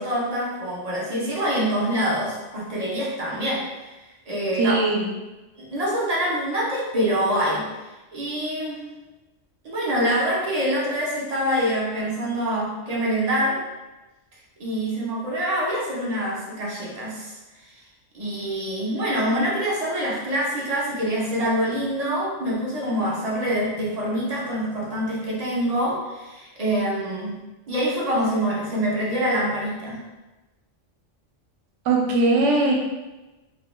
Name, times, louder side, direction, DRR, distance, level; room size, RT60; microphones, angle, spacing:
voice 1, 0.0-4.0 4.3-4.8 5.6-7.7 8.1-8.8 9.6-13.6 14.6-17.4 17.6-17.7 18.1-27.4 27.7-30.0, equal, 50° right, -5 dB, 0.4 m, -25 dB
voice 2, 4.6-5.0 31.9-32.7, right 2 dB, 75° right, 0 dB, 0.9 m, -20 dB
2.4 x 2.1 x 3.0 m, 1.1 s
omnidirectional pair, 1.3 m